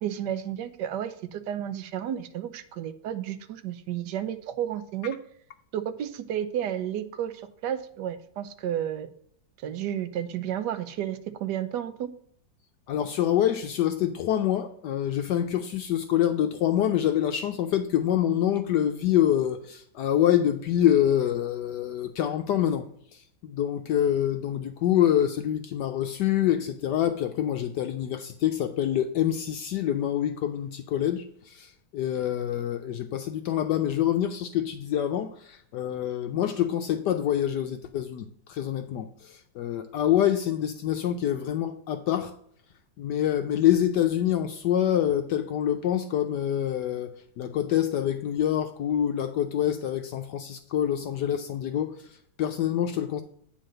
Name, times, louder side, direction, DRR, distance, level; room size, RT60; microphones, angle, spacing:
voice 1, 0.0-5.2 5.7-7.3 7.6-9.1 9.6-12.1, right 10 dB, 70° right, 1.2 m, -32 dB
voice 2, 12.9-42.4 43.0-53.2, left 11 dB, 70° left, 1.1 m, -26 dB
9.2 x 3.9 x 6.4 m
omnidirectional pair, 2.1 m